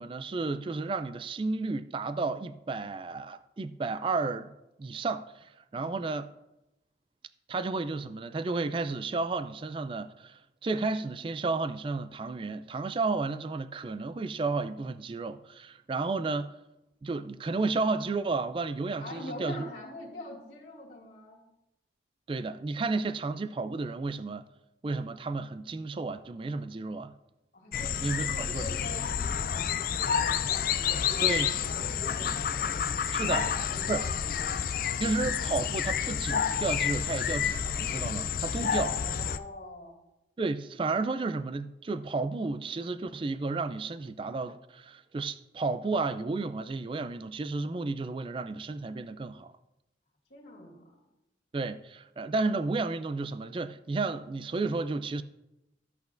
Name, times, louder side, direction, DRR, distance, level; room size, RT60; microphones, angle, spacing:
voice 1, 0.0-4.5 4.8-6.3 7.5-16.5 17.0-19.7 22.3-24.4 24.8-27.1 28.0-28.7 31.2-31.6 33.1-33.5 33.9-34.0 35.0-39.0 40.4-49.5 51.5-55.2, right 3 dB, 30° right, 0.3 m, -32 dB
voice 2, 19.0-21.4 27.5-33.0 33.3-35.1 38.8-40.0 50.3-50.9, left 1 dB, 70° left, 2.2 m, -44 dB
sound 1, 27.7-39.4, left 8 dB, 50° left, 0.3 m, -29 dB
13.0 x 8.1 x 2.6 m
head